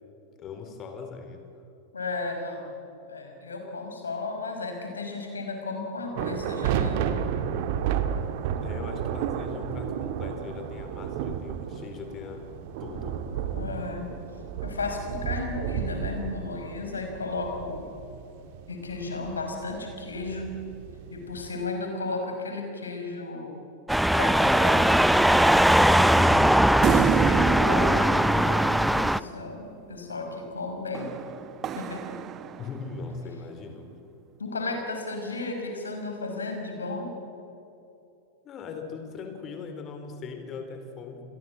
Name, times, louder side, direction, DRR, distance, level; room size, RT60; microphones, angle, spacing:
voice 1, 0.4-1.4 8.6-13.6 32.6-33.9 38.4-41.2, left 5 dB, 30° left, 6 dB, 4.3 m, -40 dB
voice 2, 1.9-2.7 3.0-7.0 13.5-14.1 14.6-17.9 18.7-20.5 21.1-23.6 24.2-24.9 25.9-31.1 31.7-32.0 34.4-37.1, left 3 dB, 75° left, 3 dB, 5.7 m, -34 dB
sound 1, 6.2-21.5, right 8 dB, 50° right, 1.9 m, -32 dB
sound 2, 23.9-29.2, equal, ahead, 0.6 m, -20 dB
sound 3, 26.8-29.5 30.9-33.0, right 9 dB, 30° right, 0.9 m, -29 dB
29.0 x 22.0 x 7.7 m, 2.9 s
figure-of-eight pair, 90°, 0 cm